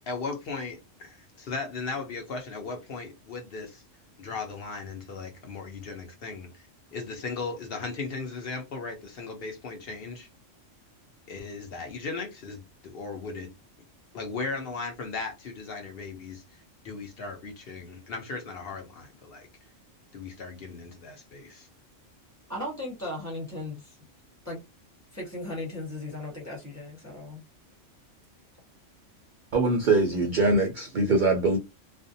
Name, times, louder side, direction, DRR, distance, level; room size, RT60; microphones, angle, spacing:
voice 1, 0.1-3.8 4.2-10.3 11.3-13.5 14.1-16.4 16.8-19.5 20.1-21.7, left 4 dB, 60° left, 0.8 m, -37 dB
voice 2, 22.5-24.0 24.4-24.6 25.1-27.4, left 1 dB, 15° right, 0.8 m, -36 dB
voice 3, 29.5-31.6, right 3 dB, 60° right, 0.5 m, -23 dB
2.5 x 2.1 x 2.6 m
omnidirectional pair, 1.3 m